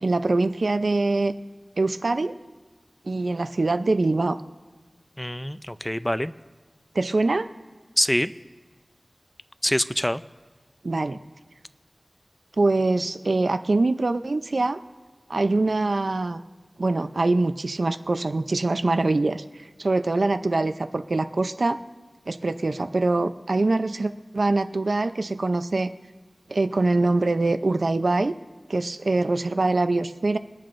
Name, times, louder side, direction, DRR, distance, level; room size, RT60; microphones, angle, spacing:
voice 1, 0.0-1.3 1.8-2.3 3.1-4.4 6.9-7.5 10.8-11.2 12.6-14.8 15.3-16.4 16.8-19.4 19.8-21.8 22.3-25.9 26.5-28.3 28.7-30.4, right 2 dB, 75° right, 10 dB, 0.5 m, -23 dB
voice 2, 5.2-6.3 8.0-8.3 9.6-10.2, equal, 10° left, 13 dB, 0.4 m, -25 dB
27.0 x 10.5 x 2.6 m, 1.3 s
wide cardioid pair, 45°, 0 cm